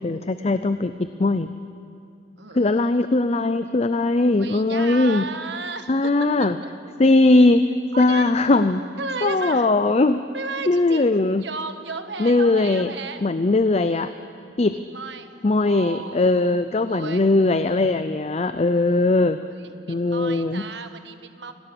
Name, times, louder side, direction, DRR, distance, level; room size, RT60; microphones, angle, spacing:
voice 1, 0.0-1.5 2.5-5.2 5.9-6.6 7.0-7.6 8.0-8.8 9.2-10.2 10.7-11.4 12.2-12.9 13.2-14.1 14.6-14.8 15.4-19.4 19.9-20.6, left 2 dB, 35° left, 11 dB, 0.5 m, -19 dB
voice 2, 2.4-2.9 4.2-6.5 7.9-8.3 9.0-9.7 10.3-13.2 14.9-16.2 16.9-17.3 18.6-19.1 19.6-21.5, right 4 dB, 80° right, 8 dB, 1.4 m, -34 dB
27.5 x 18.0 x 6.9 m, 2.5 s
head